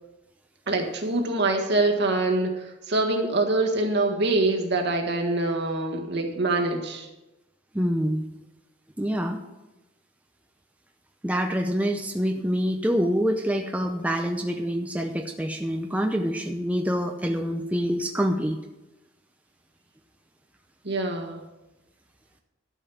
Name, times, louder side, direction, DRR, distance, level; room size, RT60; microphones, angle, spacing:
voice 1, 0.7-7.1 20.8-21.4, right 2 dB, 60° right, 2 dB, 1.6 m, -25 dB
voice 2, 7.7-8.3 9.0-9.4 11.2-18.6, equal, 5° right, 3 dB, 0.6 m, -26 dB
12.5 x 5.5 x 7.0 m, 1.0 s
head